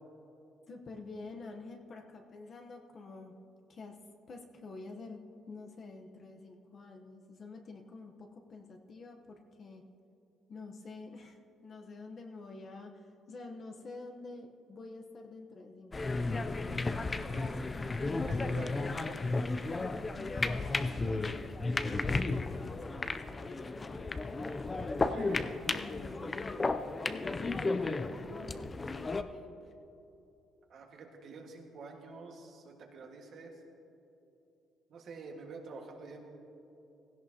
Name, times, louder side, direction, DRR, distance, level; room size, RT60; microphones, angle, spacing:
voice 1, 0.7-3.4 3.7-4.0 4.3-5.2 5.5-9.9 10.5-16.6 17.2-19.2 20.1-24.7 25.7-26.7 27.0-29.7, left 3 dB, 35° left, 4 dB, 0.8 m, -49 dB
sound 1, 15.9-29.2, left 3 dB, 20° left, 0.4 m, -34 dB
voice 2, 18.2-19.2 25.0-25.5 30.7-33.6 34.9-36.3, right 4 dB, 50° right, 2 dB, 1.5 m, -47 dB
16.5 x 16.5 x 2.8 m, 2.9 s
cardioid pair, 170°, 0 cm